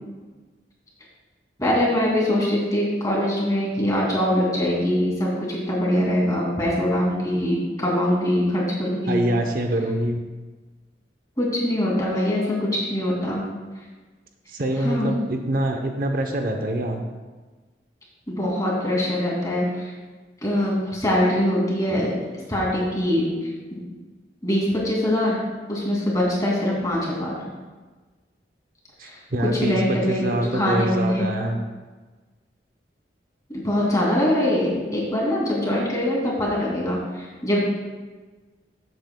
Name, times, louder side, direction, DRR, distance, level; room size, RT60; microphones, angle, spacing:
voice 1, 1.6-9.2 11.4-13.4 14.8-15.1 18.3-19.9 20.4-22.1 22.5-23.3 23.7-23.8 24.4-27.3 29.0-30.2 30.5-31.3 33.5-37.6, left 1 dB, 20° left, -4 dB, 2.4 m, -23 dB
voice 2, 9.1-10.2 14.5-17.0 21.9-22.0 29.0-31.6, right 1 dB, 50° right, 4 dB, 0.7 m, -25 dB
13.0 x 8.3 x 2.2 m, 1.3 s
head